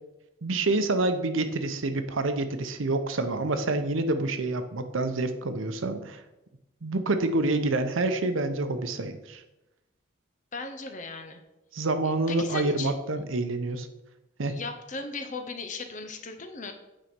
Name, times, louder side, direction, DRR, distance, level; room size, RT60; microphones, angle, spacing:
voice 1, 0.4-6.2 6.8-9.4 11.7-13.9 14.4-14.6, right 2 dB, 80° right, 9 dB, 0.8 m, -27 dB
voice 2, 10.5-11.4 12.0-12.9 14.4-16.7, left 4 dB, 40° left, 7 dB, 0.8 m, -37 dB
8.9 x 4.1 x 5.2 m, 0.97 s
head